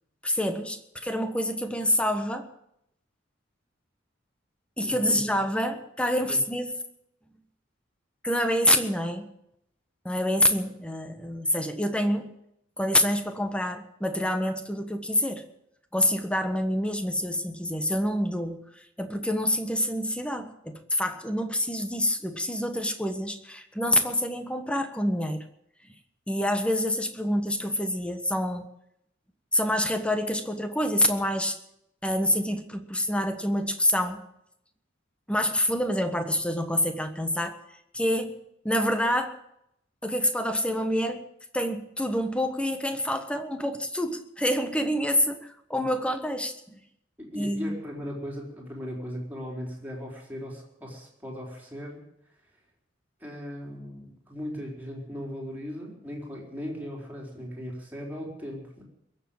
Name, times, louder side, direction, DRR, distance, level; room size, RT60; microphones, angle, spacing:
voice 1, 0.2-2.5 4.8-6.7 8.2-9.3 10.0-12.3 12.8-15.4 15.9-18.6 19.0-25.4 26.3-28.7 29.5-31.6 32.0-34.2 35.3-37.6 37.9-38.3 38.6-39.4 40.0-41.2 41.5-46.8 47.4-47.8, left 1 dB, 5° left, 7 dB, 1.3 m, -27 dB
voice 2, 4.8-5.4 6.3-6.4 45.7-45.8 47.2-52.0 53.2-58.8, equal, 10° right, -2 dB, 4.3 m, -38 dB
22.0 x 7.4 x 8.8 m, 0.77 s
head